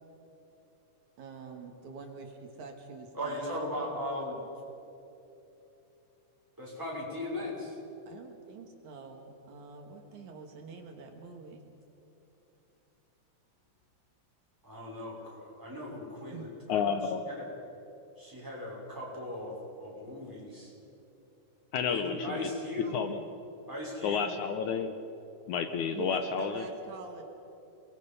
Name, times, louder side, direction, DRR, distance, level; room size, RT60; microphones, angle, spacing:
voice 1, 1.2-3.8 8.1-11.7 16.3-16.5 25.9-27.2, right 4 dB, 65° right, 3 dB, 2.9 m, -45 dB
voice 2, 3.1-4.4 6.6-7.8 14.6-17.0 17.3-17.4 18.2-20.7 21.8-23.0 23.7-24.3, left 1 dB, 5° right, -4 dB, 5.9 m, -38 dB
voice 3, 16.7-17.2 21.7-22.5 22.9-23.3 24.0-24.9 25.5-26.6, left 7 dB, 75° left, 8 dB, 2.1 m, -31 dB
29.0 x 21.5 x 5.5 m, 3.0 s
omnidirectional pair, 3.8 m